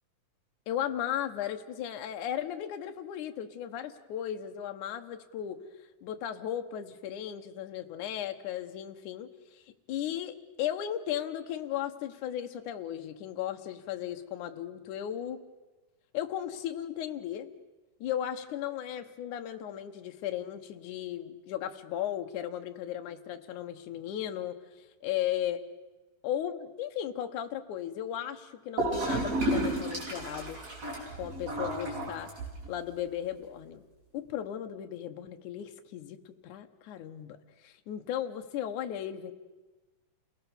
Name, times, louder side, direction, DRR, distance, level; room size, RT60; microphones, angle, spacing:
voice 1, 0.7-5.6 6.0-9.6 9.9-15.4 16.1-17.5 18.0-24.6 25.0-25.6 26.2-30.6 31.2-32.3 32.7-33.8 34.1-39.3, left 10 dB, 65° left, 6 dB, 2.4 m, -36 dB
Gurgling / Toilet flush, 28.8-32.8, right 1 dB, 45° right, 6.9 m, -32 dB
29.0 x 18.5 x 7.1 m, 1.2 s
omnidirectional pair, 4.1 m